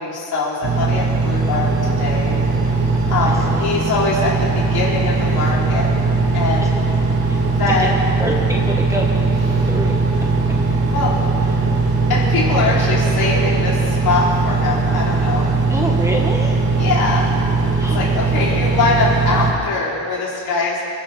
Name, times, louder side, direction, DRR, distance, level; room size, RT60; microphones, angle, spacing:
voice 1, 0.0-2.4 3.1-5.9 6.3-6.7 7.6-8.0 9.5-9.7 10.9-11.4 12.1-15.5 16.8-17.3 17.9-20.8, left 3 dB, 65° left, -5 dB, 4.5 m, -22 dB
Engine, 0.6-19.5, right 3 dB, 60° right, 2.7 m, -19 dB
voice 2, 3.0-3.7 6.6-6.7 7.7-7.9 8.2-9.4 9.7-9.9 10.5-10.6 11.5-11.7 15.7-16.7 17.8-18.1, right 1 dB, 5° right, -1 dB, 1.4 m, -26 dB
27.5 x 11.5 x 3.9 m, 2.7 s
cardioid pair, 140°, 40 cm